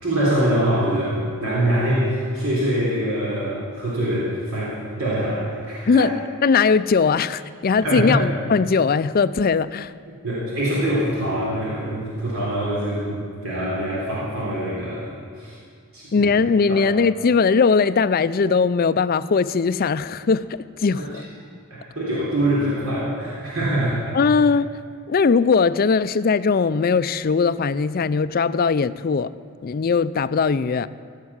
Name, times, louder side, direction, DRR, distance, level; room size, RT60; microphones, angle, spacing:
voice 1, 0.0-6.1 7.8-8.2 10.1-15.6 15.9-16.3 16.7-16.8 21.0-21.1 21.7-24.2, right 1 dB, 75° right, 3.5 m, -24 dB
voice 2, 6.4-9.9 16.1-21.2 24.1-24.7 25.1-29.3 29.6-30.9, left 5 dB, 45° left, 0.4 m, -19 dB
16.0 x 7.4 x 9.6 m
head